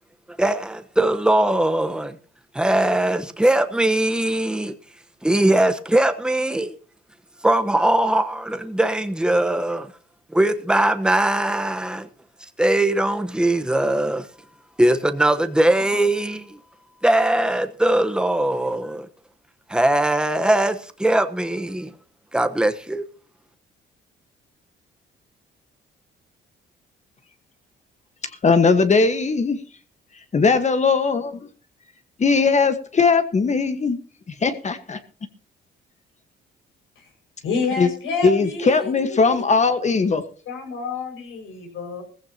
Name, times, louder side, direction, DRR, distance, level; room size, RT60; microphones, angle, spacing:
voice 1, 0.4-2.2 2.5-4.7 5.2-6.7 7.4-9.9 10.3-12.1 12.6-14.3 14.8-16.6 17.0-19.1 19.7-21.9 22.3-23.1, right 1 dB, 5° right, 1.1 m, -20 dB
voice 2, 28.4-29.6 30.3-31.5 32.2-34.0 34.3-35.0 37.8-37.9 38.2-40.2, left 4 dB, 35° left, 1.4 m, -19 dB
voice 3, 37.4-39.6 40.5-42.0, left 4 dB, 85° left, 5.6 m, -29 dB
17.0 x 15.5 x 2.9 m
cardioid pair, 90°, 20 cm